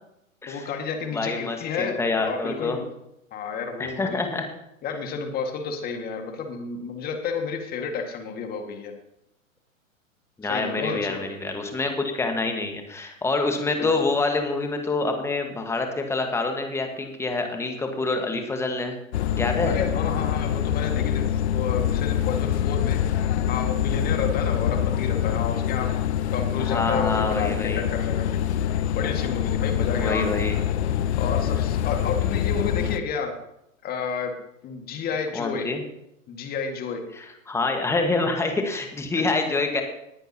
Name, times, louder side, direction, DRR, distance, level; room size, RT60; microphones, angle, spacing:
voice 1, 0.5-2.9 3.3-4.2 4.8-8.9 10.4-11.4 13.8-14.0 19.6-21.2 21.5-23.0 23.5-25.9 26.3-28.4 28.9-30.3 31.1-33.3 33.8-34.3 34.6-35.7 36.3-37.0, left 5 dB, 20° left, 4 dB, 1.8 m, -31 dB
voice 2, 1.1-2.8 3.8-4.5 10.4-19.0 19.4-19.8 26.6-27.8 30.0-30.6 35.3-35.8 37.2-39.8, left 3 dB, 5° left, 4 dB, 1.4 m, -26 dB
sound 1, 19.1-33.0, left 10 dB, 50° left, 0.7 m, -25 dB
19.0 x 9.9 x 2.8 m, 0.82 s
hypercardioid pair, 120°, 41 cm